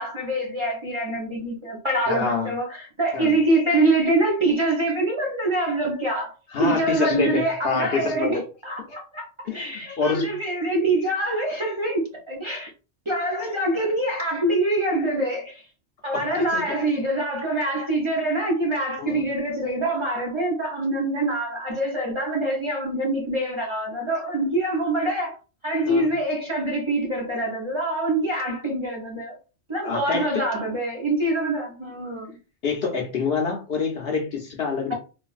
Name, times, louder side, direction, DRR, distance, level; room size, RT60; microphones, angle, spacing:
voice 1, 0.0-6.3 6.6-8.4 8.6-9.3 9.5-12.0 12.3-12.7 13.1-15.6 16.0-25.4 25.6-29.4 29.7-32.4, right 1 dB, 30° right, 0.8 m, -25 dB
voice 2, 2.1-2.5 3.1-3.3 6.5-8.4 9.4-10.4 16.1-16.7 19.0-19.2 25.9-26.1 29.8-30.4 32.6-34.9, left 5 dB, 60° left, 0.8 m, -27 dB
3.2 x 2.4 x 2.4 m
omnidirectional pair, 1.2 m